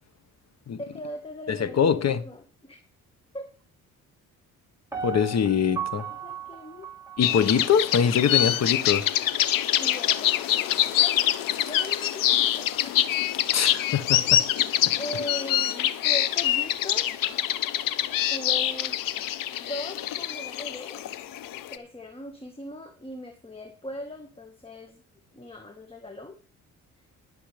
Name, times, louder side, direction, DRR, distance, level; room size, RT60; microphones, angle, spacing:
voice 1, 0.8-2.8 3.3-3.5 6.1-6.9 9.5-11.2 11.6-13.2 14.9-17.1 18.3-19.0 19.5-21.0 21.7-25.0 25.3-26.4, left 1 dB, 15° left, 1.6 m, -39 dB
voice 2, 1.5-2.2 5.0-6.0 7.2-9.1 13.5-14.4, left 7 dB, 55° left, 1.4 m, -23 dB
Piano, 4.9-8.0 8.4-8.5, right 7 dB, 10° right, 3.4 m, -36 dB
sound 1, 7.2-21.8, left 12 dB, 85° left, 1.0 m, -25 dB
21.0 x 7.1 x 3.4 m
cardioid pair, 90°, 32 cm